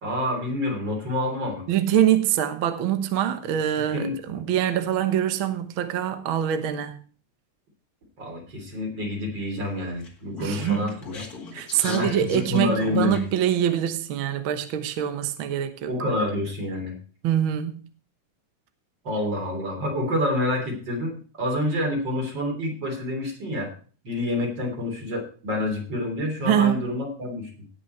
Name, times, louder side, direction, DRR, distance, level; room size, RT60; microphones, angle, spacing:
voice 1, 0.0-1.6 3.9-4.4 8.2-11.2 11.8-13.2 15.9-16.9 19.0-23.7 24.0-27.5, left 1 dB, 35° right, 3.8 m, -28 dB
voice 2, 1.7-7.0 10.4-10.9 11.5-15.9 17.2-17.9 26.4-26.8, right 10 dB, 60° right, 1.4 m, -24 dB
Speech, 10.0-13.4, left 3 dB, 30° left, 2.3 m, -40 dB
18.0 x 6.2 x 4.5 m
omnidirectional pair, 3.7 m